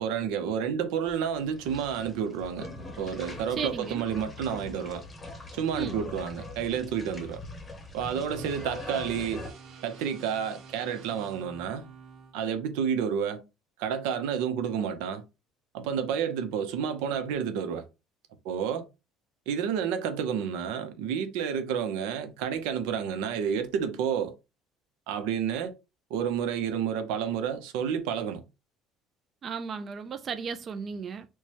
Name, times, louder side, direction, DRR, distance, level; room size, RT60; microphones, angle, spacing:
voice 1, 0.0-2.7 3.0-5.0 5.5-7.4 7.9-9.5 9.8-11.9 12.3-13.4 13.8-15.2 15.7-17.8 18.4-18.9 19.5-24.3 25.1-25.7 26.1-28.4, right 8 dB, 85° right, 0.6 m, -30 dB
sound 1, 1.0-9.5, left 2 dB, 20° left, 0.8 m, -42 dB
voice 2, 3.6-4.0 5.8-6.0 29.4-31.3, right 6 dB, 35° right, 0.3 m, -34 dB
sound 2, 8.4-12.3, right 5 dB, 50° right, 1.5 m, -49 dB
4.5 x 2.1 x 2.9 m
cardioid pair, 140°, 0 cm